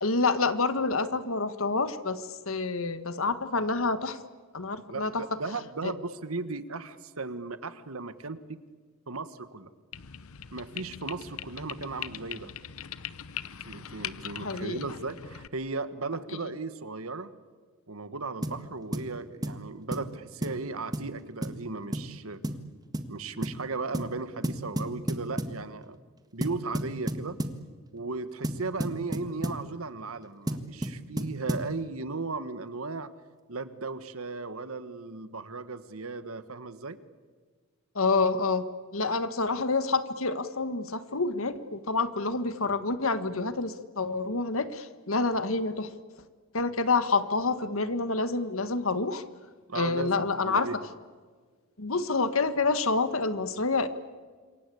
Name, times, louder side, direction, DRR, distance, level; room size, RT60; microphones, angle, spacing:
voice 1, 0.0-4.2 4.5-5.2 5.8-5.9 14.4-14.9 16.4-16.5 37.9-38.6 38.9-45.9 46.5-49.2 49.7-50.7 51.8-53.9, left 3 dB, 75° left, 12 dB, 1.6 m, -28 dB
voice 2, 4.9-8.6 9.1-9.7 10.5-12.5 13.6-17.3 17.9-22.4 23.1-26.0 26.3-27.4 27.9-33.1 33.5-37.0 49.7-50.8, right 3 dB, 85° right, 13 dB, 1.5 m, -36 dB
sound 1, 9.9-15.5, left 9 dB, 90° left, 0.8 m, -41 dB
sound 2, 18.4-18.6 18.9-19.1 19.4-19.6 19.9-20.1 20.4-20.6 20.9-21.1 21.4-21.6 21.9-22.1 22.4-22.7 22.9-23.1 23.4-23.6 23.9-24.1 24.4-25.6 26.4-27.6 28.4-29.6 30.5-31.7, right 1 dB, 20° right, 1.6 m, -32 dB
27.0 x 23.5 x 8.6 m, 1.5 s
head